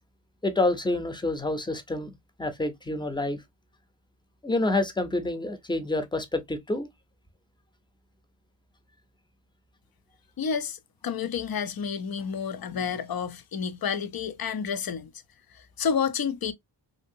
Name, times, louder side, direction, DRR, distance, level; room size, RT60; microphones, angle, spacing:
voice 1, 0.4-3.4 4.4-6.9, left 2 dB, 10° left, 0.6 m, -28 dB
voice 2, 10.4-15.1 15.8-16.5, left 6 dB, 50° left, 0.6 m, -30 dB
2.8 x 2.7 x 2.6 m
wide cardioid pair, 65°, 45 cm